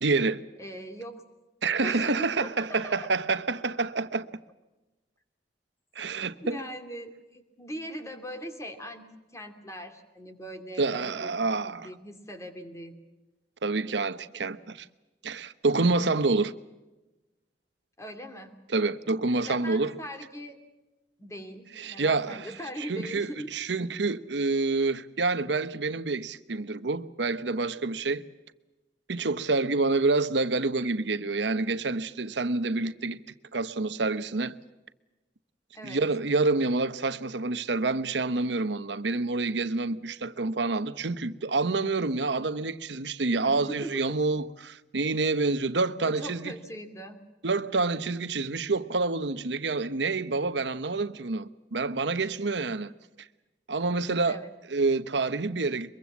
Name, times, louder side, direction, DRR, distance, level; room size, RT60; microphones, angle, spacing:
voice 1, 0.0-0.4 1.6-4.3 5.9-6.6 10.8-11.9 13.6-14.9 15.2-16.5 18.7-20.0 21.8-22.5 22.8-28.2 29.1-33.2 33.5-34.5 35.8-46.5 47.4-52.9 53.7-55.9, right 3 dB, 80° right, 1.0 m, -28 dB
voice 2, 0.6-1.2 1.8-3.1 6.4-13.0 18.0-18.6 19.4-20.6 21.2-23.5 35.7-36.0 43.4-44.2 46.0-47.2 54.3-54.5, equal, 15° left, 2.5 m, -40 dB
23.5 x 23.0 x 7.2 m
head